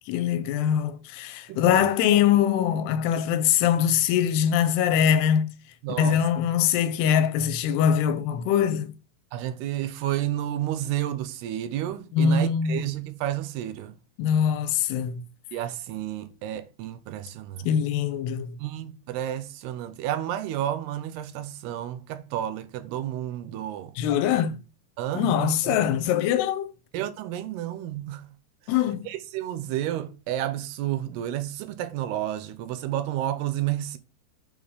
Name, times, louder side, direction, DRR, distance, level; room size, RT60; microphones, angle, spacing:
voice 1, 0.1-5.5 6.0-8.9 12.1-12.8 14.2-15.2 17.6-18.6 24.0-24.6 25.1-26.7 28.7-29.1, left 9 dB, 80° left, 2.7 m, -23 dB
voice 2, 1.5-1.9 5.8-6.2 9.3-14.0 15.5-17.7 18.6-23.9 25.0-25.8 26.9-28.2 29.1-34.0, right 12 dB, 80° right, 2.7 m, -31 dB
7.2 x 3.8 x 4.7 m
omnidirectional pair, 4.8 m